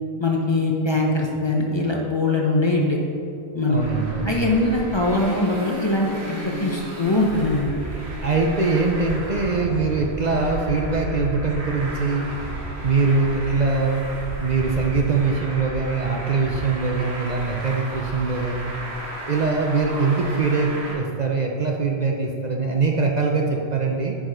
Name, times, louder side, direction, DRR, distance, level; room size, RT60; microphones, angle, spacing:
voice 1, 0.2-3.0 3.5-3.8 4.2-7.8, left 2 dB, 25° left, -1 dB, 0.9 m, -22 dB
voice 2, 3.7-4.4 8.2-12.3 12.8-14.0 14.4-18.7 19.3-24.2, right 4 dB, 45° right, 1 dB, 0.7 m, -22 dB
Traffic noise roadway noise, 3.8-20.9, right 1 dB, 90° right, 1.8 m, -33 dB
10.0 x 4.9 x 5.0 m, 2.7 s
omnidirectional pair, 1.1 m